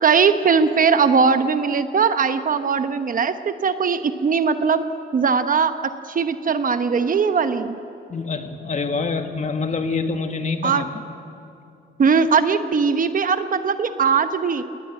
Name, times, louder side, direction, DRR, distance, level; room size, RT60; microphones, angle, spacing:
voice 1, 0.0-4.8 5.1-7.8 10.6-10.9 12.0-14.6, right 5 dB, 45° right, 10 dB, 1.1 m, -20 dB
voice 2, 8.1-11.0, left 4 dB, 35° left, 6 dB, 1.8 m, -26 dB
19.5 x 19.0 x 9.0 m, 2.6 s
cardioid pair, 90°, 20 cm